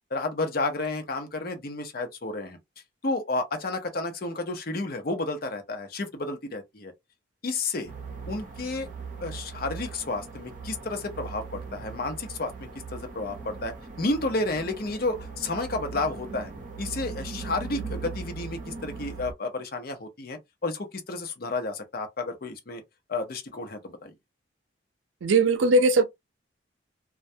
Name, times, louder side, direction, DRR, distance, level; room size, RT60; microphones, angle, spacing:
voice 1, 0.1-2.6 3.0-6.9 7.4-7.9 8.3-8.9 9.2-16.5 16.8-22.8 23.1-24.1, left 2 dB, 50° left, 0.7 m, -31 dB
sound 1, 7.9-19.3, right 4 dB, 45° right, 0.7 m, -39 dB
voice 2, 25.2-26.0, right 2 dB, 85° right, 0.5 m, -19 dB
2.2 x 2.1 x 2.6 m
head